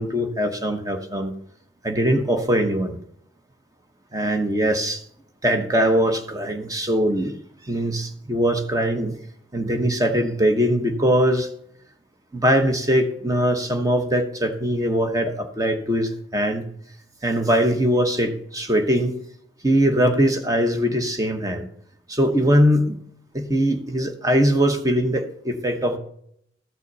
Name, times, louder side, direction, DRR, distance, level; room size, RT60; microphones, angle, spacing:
voice 1, 0.0-1.3 1.8-3.0 4.1-5.0 5.4-7.4 7.6-9.1 9.5-11.5 12.3-16.7 17.2-19.1 19.6-21.7 22.1-23.0 23.3-26.0, equal, 20° right, 6 dB, 1.0 m, -21 dB
13.5 x 6.0 x 4.0 m, 0.69 s
head